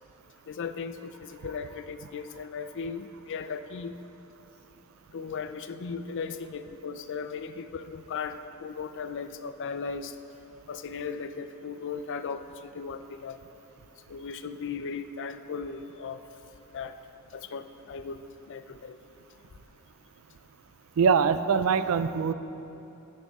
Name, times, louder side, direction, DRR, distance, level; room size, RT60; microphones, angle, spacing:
voice 1, 0.5-4.0 5.1-10.1 10.7-13.4 14.1-16.2 16.7-16.9 17.3-18.2 18.5-19.0, left 5 dB, 55° left, 10 dB, 0.4 m, -37 dB
voice 2, 21.0-22.3, right 6 dB, 70° right, 13 dB, 0.4 m, -23 dB
16.5 x 6.3 x 3.6 m, 3.0 s
head